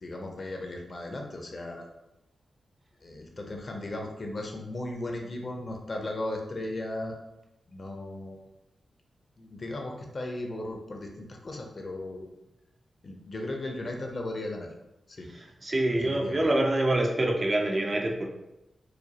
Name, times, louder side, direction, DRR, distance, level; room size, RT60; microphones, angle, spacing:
voice 1, 0.0-1.9 3.0-7.2 7.7-8.4 9.4-12.3 13.0-14.7 15.1-15.3 16.0-16.5, left 1 dB, 40° left, 2 dB, 0.6 m, -36 dB
voice 2, 15.6-18.3, right 1 dB, 30° right, 2 dB, 0.4 m, -25 dB
4.8 x 2.2 x 2.9 m, 0.90 s
wide cardioid pair, 140°, 0 cm